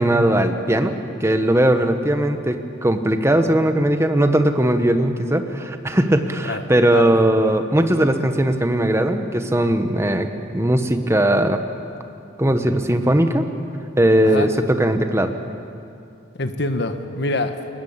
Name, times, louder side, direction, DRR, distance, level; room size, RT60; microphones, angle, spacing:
voice 1, 0.0-10.3 10.5-11.6 12.4-13.5 14.0-15.3, right 1 dB, 15° right, 7 dB, 1.1 m, -19 dB
voice 2, 6.5-7.1 14.2-14.5 16.4-17.6, left 2 dB, 55° left, 8 dB, 1.4 m, -25 dB
21.5 x 19.5 x 8.8 m, 2.5 s
head